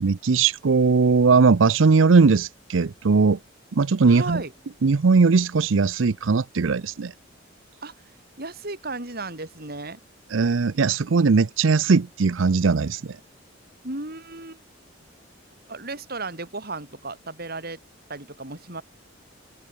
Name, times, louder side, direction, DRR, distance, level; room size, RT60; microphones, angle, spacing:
voice 1, 0.0-3.4 3.7-4.4 4.8-7.1 10.3-13.2, right 4 dB, 80° right, 0.6 m, -19 dB
voice 2, 4.1-4.5 7.8-7.9 8.4-10.0 13.8-14.6 15.7-17.8 18.1-18.8, right 3 dB, 55° right, 6.1 m, -34 dB
open air
head